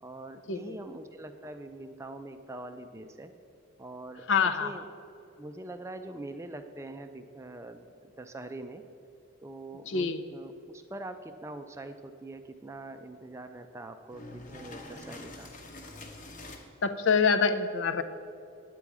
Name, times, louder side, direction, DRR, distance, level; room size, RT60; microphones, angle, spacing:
voice 1, 0.0-3.3 3.8-4.2 4.6-4.8 5.4-8.8 9.4-15.5, right 2 dB, 15° right, 8 dB, 0.4 m, -43 dB
voice 2, 4.3-4.7 9.9-10.3 16.8-18.0, left 5 dB, 60° left, 8 dB, 0.5 m, -26 dB
sound 1, 14.1-16.6, left 2 dB, 40° left, 1.0 m, -45 dB
9.1 x 8.5 x 4.8 m, 2.6 s
head